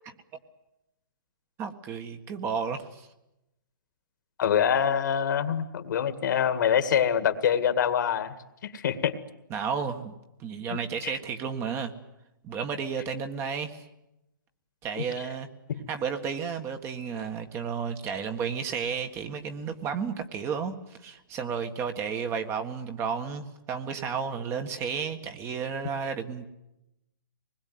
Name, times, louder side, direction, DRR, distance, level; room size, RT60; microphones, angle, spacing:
voice 1, 1.6-3.1 9.5-10.1 10.4-11.9 12.4-13.8 14.8-15.5 15.9-26.5, right 6 dB, 20° right, 7 dB, 1.7 m, -32 dB
voice 2, 4.4-8.3 8.6-9.1 11.0-11.1 15.0-15.1 15.7-15.8, left 8 dB, 60° left, 10 dB, 2.0 m, -25 dB
25.0 x 20.5 x 9.5 m, 0.90 s
hypercardioid pair, 145°, 12 cm